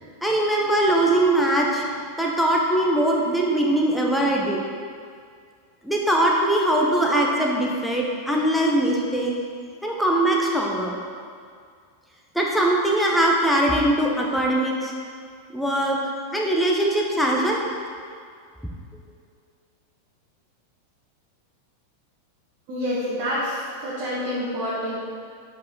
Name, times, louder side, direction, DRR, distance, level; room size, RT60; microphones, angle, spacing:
voice 1, 0.2-1.8 2.2-4.6 5.8-9.3 9.8-11.0 12.3-14.9 15.5-16.0 16.3-17.6, right 1 dB, ahead, -2 dB, 1.0 m, -21 dB
voice 2, 22.7-25.1, equal, 45° right, -9 dB, 1.6 m, -28 dB
7.3 x 4.6 x 3.9 m, 2.1 s
figure-of-eight pair, 90°, 0 cm